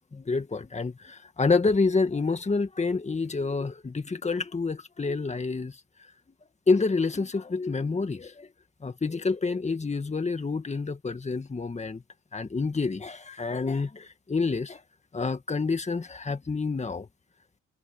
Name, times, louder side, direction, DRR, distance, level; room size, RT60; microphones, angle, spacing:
voice 1, 0.1-5.7 6.7-8.5 8.8-12.0 12.3-14.8 15.1-17.1, left 4 dB, 25° left, 1.9 m, -28 dB
cardioid pair, 90°, 30 cm